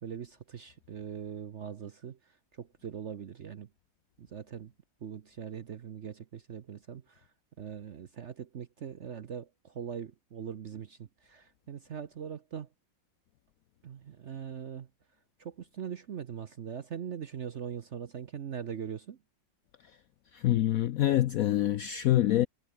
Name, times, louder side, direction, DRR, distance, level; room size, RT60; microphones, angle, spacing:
voice 1, 0.0-3.7 4.2-4.7 5.0-7.3 7.6-12.7 13.8-14.9 15.4-19.2, right 8 dB, 55° right, 0.8 m, -41 dB
voice 2, 20.3-22.5, left 13 dB, 75° left, 0.8 m, -25 dB
omnidirectional pair, 2.0 m